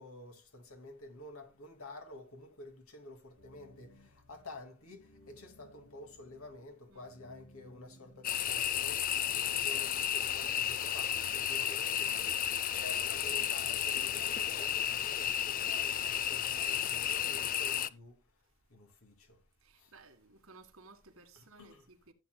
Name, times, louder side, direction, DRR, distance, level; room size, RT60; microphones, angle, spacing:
voice 1, 0.0-9.0 9.3-12.2 12.7-18.1 18.7-19.4 21.6-21.8, left 2 dB, 85° left, 2.3 m, -50 dB
sound 1, 3.4-15.1, equal, 65° left, 2.2 m, -61 dB
sound 2, 8.2-17.9, left 10 dB, 40° left, 0.4 m, -33 dB
voice 2, 19.6-22.1, right 3 dB, 75° right, 1.8 m, -57 dB
15.0 x 8.7 x 2.2 m
head